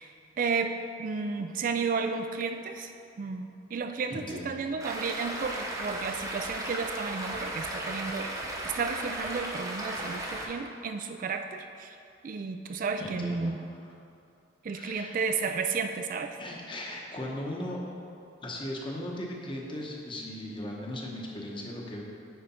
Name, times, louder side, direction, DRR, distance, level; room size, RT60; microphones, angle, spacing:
voice 1, 0.0-8.3 8.6-12.0 12.2-13.6 14.6-16.4, right 5 dB, 45° right, 7 dB, 0.3 m, -33 dB
voice 2, 4.1-4.5 13.0-13.5 14.7-15.2 16.4-17.8 18.4-22.0, left 1 dB, 25° left, -1 dB, 1.0 m, -37 dB
Stream, 4.8-10.5, right 1 dB, 20° right, 0.8 m, -36 dB
9.2 x 5.0 x 4.3 m, 2.5 s
head